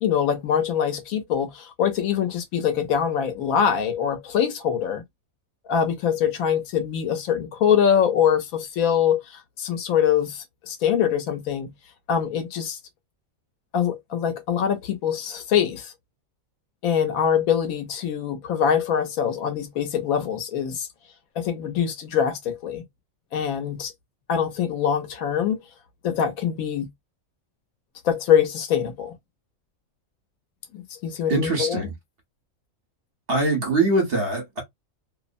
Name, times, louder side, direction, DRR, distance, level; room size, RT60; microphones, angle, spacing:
voice 1, 0.0-5.0 5.7-11.7 12.1-12.8 13.7-15.9 16.8-20.9 21.4-22.8 23.3-23.9 24.3-25.6 26.0-26.9 28.0-29.1 30.7-31.9, left 8 dB, 90° left, 1.2 m, -23 dB
voice 2, 31.3-31.9 33.3-34.6, right 2 dB, 45° right, 1.1 m, -23 dB
2.7 x 2.0 x 2.5 m
omnidirectional pair, 1.4 m